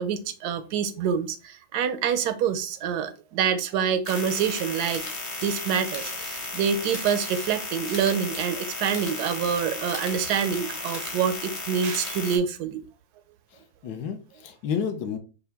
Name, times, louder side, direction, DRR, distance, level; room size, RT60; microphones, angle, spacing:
voice 1, 0.0-5.0 5.4-12.8, right 7 dB, 70° right, 11 dB, 1.0 m, -26 dB
sound 1, 4.0-12.4, left 2 dB, 40° left, 0.5 m, -34 dB
voice 2, 13.5-15.2, left 7 dB, 70° left, 6 dB, 1.2 m, -31 dB
5.5 x 2.2 x 3.4 m, 0.34 s
omnidirectional pair, 2.0 m